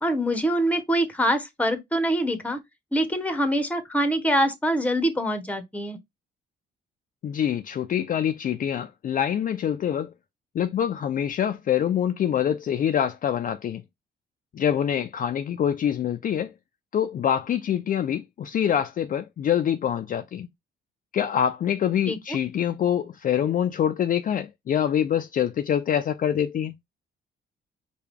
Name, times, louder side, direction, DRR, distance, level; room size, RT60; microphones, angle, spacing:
voice 1, 0.0-2.6 2.9-6.0 22.1-22.4, equal, 5° left, 0.9 m, -24 dB
voice 2, 7.2-10.1 10.5-13.8 14.5-16.5 16.9-20.5 21.1-26.7, left 9 dB, 45° left, 0.4 m, -25 dB
4.7 x 2.3 x 3.4 m
cardioid pair, 90°, 20 cm